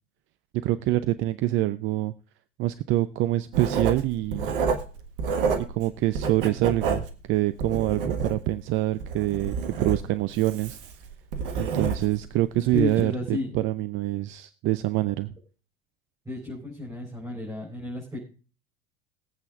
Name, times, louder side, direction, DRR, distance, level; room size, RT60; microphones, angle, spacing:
voice 1, 0.6-2.1 2.6-4.5 5.6-10.8 11.6-15.3, right 16 dB, 40° right, 13 dB, 0.7 m, -26 dB
Writing, 3.5-5.9 6.1-8.6 9.0-12.3 12.7-12.9, right 5 dB, 65° right, 1.6 m, -29 dB
voice 2, 12.7-13.6 16.2-18.2, left 2 dB, 10° right, -3 dB, 4.9 m, -32 dB
21.5 x 8.4 x 2.5 m, 0.35 s
figure-of-eight pair, 75°, 30 cm